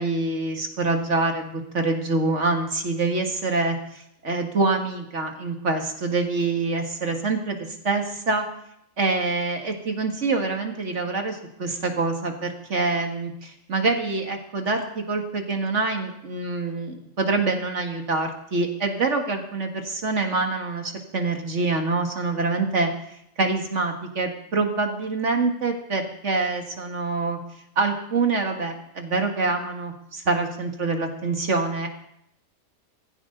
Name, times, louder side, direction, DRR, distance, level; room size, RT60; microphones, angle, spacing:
voice 1, 0.0-8.5 9.0-22.9 23.4-27.4 27.8-31.9, right 3 dB, 60° right, 3 dB, 2.2 m, -25 dB
21.0 x 15.0 x 3.9 m, 0.75 s
omnidirectional pair, 1.4 m